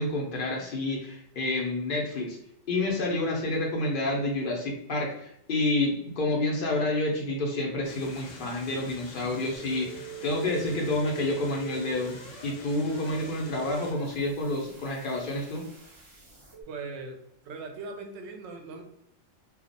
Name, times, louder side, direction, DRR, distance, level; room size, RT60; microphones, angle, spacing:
voice 1, 0.0-2.4 2.7-15.6, left 2 dB, 60° left, -1 dB, 0.6 m, -29 dB
sound 1, 7.8-13.9, left 2 dB, 75° left, 1.0 m, -46 dB
sound 2, 9.6-16.6, right 10 dB, 45° right, 0.4 m, -44 dB
voice 2, 16.7-17.2 17.4-18.8, right 3 dB, 65° right, 4 dB, 0.8 m, -39 dB
2.3 x 2.0 x 2.6 m, 0.77 s
omnidirectional pair, 1.4 m